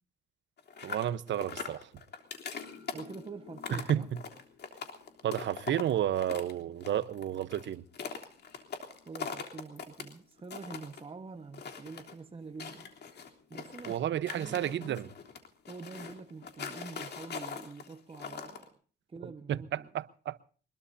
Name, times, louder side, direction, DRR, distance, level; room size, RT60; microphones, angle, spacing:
sound 1, 0.6-6.5 6.8-10.1 10.4-11.0 11.5-12.1 12.6-14.0 14.3-18.6, left 6 dB, 60° left, 3.4 m, -42 dB
sound 2, 0.7-15.8 16.4-16.7, left 6 dB, 75° left, 4.5 m, -60 dB
voice 1, 0.8-1.9 3.7-4.0 5.2-7.8 13.9-15.0 19.2-20.4, right 11 dB, 65° right, 1.0 m, -32 dB
voice 2, 2.9-4.1 9.1-12.9 13.5-15.0 15.7-18.8 19.1-19.9, right 4 dB, 30° right, 1.3 m, -46 dB
24.0 x 21.5 x 2.8 m
cardioid pair, 90°, 20 cm